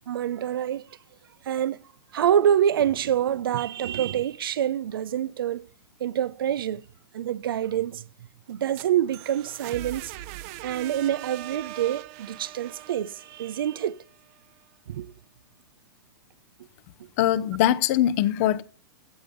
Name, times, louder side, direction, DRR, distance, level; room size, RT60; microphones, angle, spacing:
voice 1, 0.1-0.8 1.5-1.8 2.1-5.7 6.0-6.8 7.1-8.0 8.5-10.1 10.6-14.0 14.9-15.1, right 10 dB, 80° right, 0.6 m, -26 dB
sound 1, 8.5-14.4, right 15 dB, 40° right, 0.8 m, -41 dB
voice 2, 17.2-18.6, left 12 dB, 45° left, 0.8 m, -22 dB
16.0 x 5.3 x 7.0 m
hypercardioid pair, 145°, 12 cm